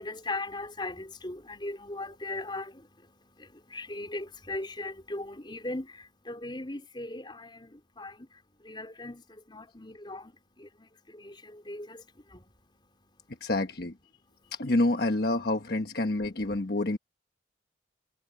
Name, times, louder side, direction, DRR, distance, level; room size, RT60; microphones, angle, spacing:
voice 1, 0.0-13.5 14.2-14.5, left 2 dB, 25° left, 4.3 m, -40 dB
voice 2, 13.4-13.9 14.5-17.0, left 2 dB, 55° left, 1.3 m, -27 dB
head